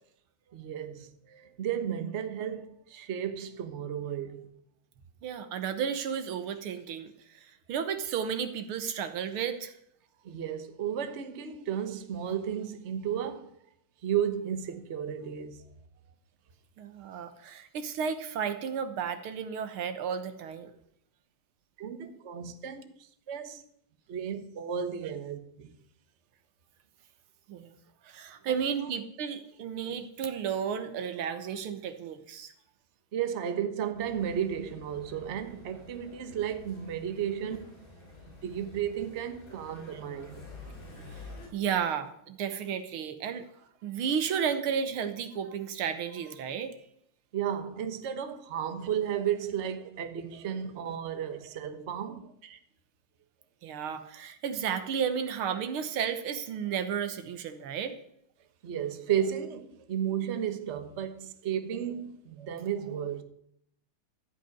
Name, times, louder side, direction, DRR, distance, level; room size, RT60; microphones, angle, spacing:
voice 1, 0.5-4.5 10.2-13.5 14.0-15.7 21.8-23.6 24.1-25.8 28.4-28.9 33.1-37.9 38.4-40.5 47.3-52.3 58.6-63.2, right 9 dB, 40° right, 1.2 m, -33 dB
voice 2, 5.2-9.7 16.8-20.7 27.5-27.7 28.0-32.5 41.5-43.5 43.8-46.8 52.5-52.6 53.6-58.0, right 7 dB, 85° right, 2.0 m, -33 dB
sound 1, 33.9-41.5, left 2 dB, 65° left, 5.3 m, -49 dB
14.5 x 6.0 x 9.7 m
omnidirectional pair, 2.3 m